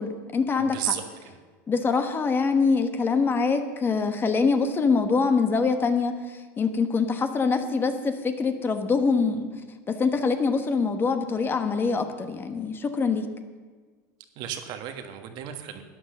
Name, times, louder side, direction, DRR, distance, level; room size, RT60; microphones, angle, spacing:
voice 1, 0.0-0.9 1.7-9.5 9.9-13.3, left 4 dB, 25° left, 7 dB, 1.2 m, -24 dB
voice 2, 0.7-1.3 14.4-15.8, right 10 dB, 55° right, 6 dB, 1.5 m, -33 dB
12.5 x 9.7 x 6.7 m, 1.5 s
supercardioid pair, 120°, 9 cm